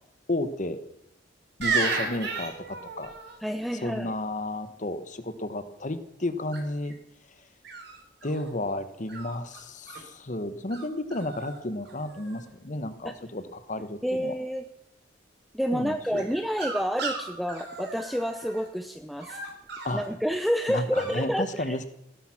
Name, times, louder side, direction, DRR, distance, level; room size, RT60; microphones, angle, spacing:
voice 1, 0.3-0.8 1.6-3.1 3.7-7.0 8.2-14.4 15.7-16.3 19.8-20.0 20.7-21.8, left 1 dB, 40° left, 11 dB, 1.3 m, -32 dB
sound 1, 1.6-3.4 6.5-6.9 7.6-8.5 9.1-10.0 10.7-10.8 11.1-11.6 11.8-12.5 16.1-18.7 19.2-20.1 20.9-21.1, right 4 dB, 60° right, 4.0 m, -34 dB
voice 2, 3.4-4.1 13.0-13.1 14.0-14.6 15.5-19.4 19.9-21.8, equal, ahead, 7 dB, 0.6 m, -29 dB
16.5 x 12.5 x 5.9 m, 0.79 s
head